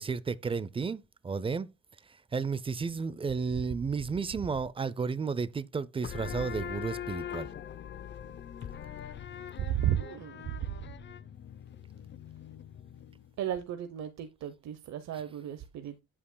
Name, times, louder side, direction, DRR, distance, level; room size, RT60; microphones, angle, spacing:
voice 1, 0.0-1.7 2.3-7.5, right 5 dB, 20° right, 0.4 m, -32 dB
sound 1, 6.0-13.3, left 9 dB, 40° left, 0.6 m, -42 dB
voice 2, 9.6-10.8 13.4-16.0, right 11 dB, 65° right, 0.9 m, -34 dB
9.7 x 8.5 x 2.2 m
cardioid pair, 130°, 29 cm